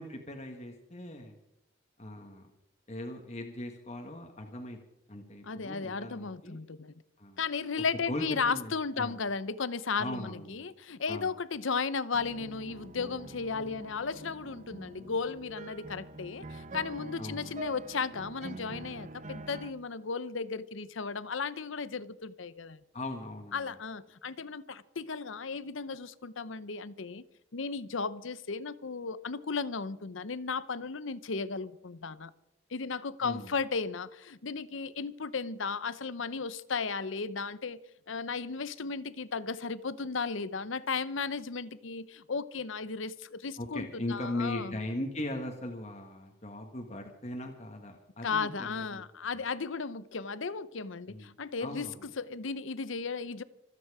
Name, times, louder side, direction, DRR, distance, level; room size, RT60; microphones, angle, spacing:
voice 1, 0.0-1.3 2.0-2.5 2.9-4.8 5.1-6.6 7.2-7.4 8.1-9.2 10.0-10.7 11.0-11.3 17.2-17.6 22.9-23.7 33.2-33.5 43.6-49.0 49.3-49.4 51.1-51.3 51.6-52.1, left 1 dB, 35° left, 1.6 m, -39 dB
voice 2, 5.4-6.9 7.4-22.8 23.5-27.2 27.5-32.3 32.7-37.8 38.1-44.8 48.2-51.9 52.2-53.4, left 5 dB, 70° left, 0.8 m, -35 dB
sound 1, 12.1-19.7, right 2 dB, 35° right, 0.8 m, -45 dB
26.0 x 9.4 x 4.9 m
head